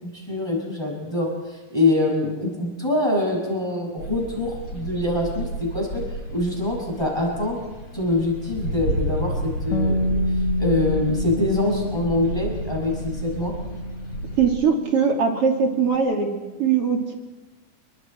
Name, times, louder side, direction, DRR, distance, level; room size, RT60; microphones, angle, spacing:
voice 1, 0.0-6.0 6.3-7.6 7.9-10.2 10.6-13.5, left 2 dB, 5° left, -1 dB, 6.8 m, -24 dB
sound 1, 4.0-14.5, equal, 35° left, 7.0 m, -31 dB
Bass guitar, 9.7-16.0, left 1 dB, 60° left, 1.5 m, -29 dB
voice 2, 14.4-16.3 16.6-17.1, right 6 dB, 45° right, 2 dB, 3.5 m, -20 dB
30.0 x 24.0 x 4.5 m, 1.2 s
omnidirectional pair, 3.9 m